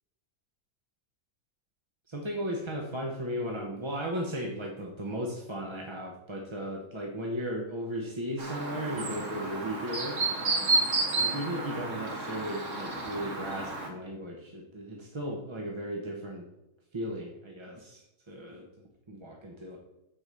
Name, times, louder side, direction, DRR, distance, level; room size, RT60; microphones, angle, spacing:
voice 1, 2.1-16.5 16.9-18.7 19.1-19.8, equal, 25° right, 0 dB, 0.8 m, -36 dB
Chirp tweet, 8.4-13.9, right 3 dB, 55° right, 1.8 m, -31 dB
7.8 x 4.7 x 6.7 m, 0.96 s
omnidirectional pair, 1.6 m